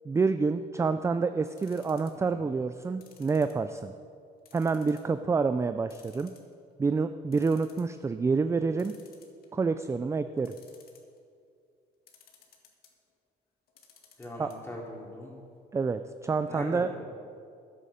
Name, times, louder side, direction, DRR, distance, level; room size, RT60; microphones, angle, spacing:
voice 1, 0.1-3.9 4.5-6.3 6.8-8.9 9.5-10.5 14.4-14.5 15.7-16.9, right 4 dB, 15° right, 10 dB, 0.4 m, -28 dB
sound 1, 1.6-2.3 3.0-4.0 4.4-5.1 5.5-5.6 5.9-6.7 7.1-7.2 7.3-7.9 8.8-9.7 10.4-11.2 12.1-12.9 13.7-14.6 14.9-15.0 15.2-15.3, left 7 dB, 65° left, 1.9 m, -57 dB
voice 2, 2.1-2.5 14.2-15.3 16.5-17.0, left 1 dB, 15° left, -2 dB, 3.2 m, -41 dB
13.5 x 9.9 x 5.1 m, 2.3 s
cardioid pair, 110°, 17 cm